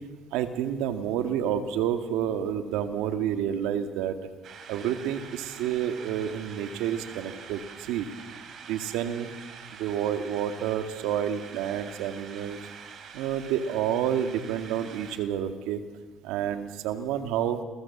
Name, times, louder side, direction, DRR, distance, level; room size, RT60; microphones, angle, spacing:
voice 1, 0.3-4.2 4.7-8.1 8.7-9.3 9.8-12.6 13.1-15.8 16.2-17.6, right 9 dB, 90° right, 8 dB, 2.2 m, -29 dB
sound 1, 4.4-15.2, right 6 dB, 65° right, 4.3 m, -45 dB
29.0 x 21.5 x 7.4 m, 1.3 s
supercardioid pair, 80°, 0 cm